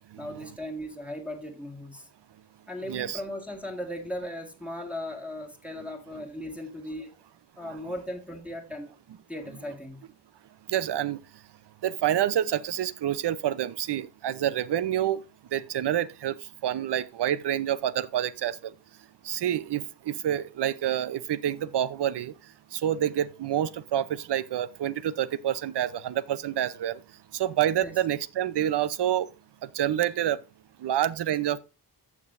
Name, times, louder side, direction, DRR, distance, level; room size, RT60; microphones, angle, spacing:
voice 1, 0.2-2.1 2.7-7.1 7.6-8.9 9.3-10.0 27.8-27.9, left 1 dB, 5° right, 1.7 m, -37 dB
voice 2, 2.9-3.2 10.7-11.2 11.8-15.2 15.5-16.4 16.6-18.6 19.3-22.3 22.7-27.0 27.3-29.3 29.7-30.4 30.8-31.6, right 11 dB, 80° right, 0.7 m, -27 dB
14.5 x 6.1 x 2.5 m
wide cardioid pair, 125°, 41 cm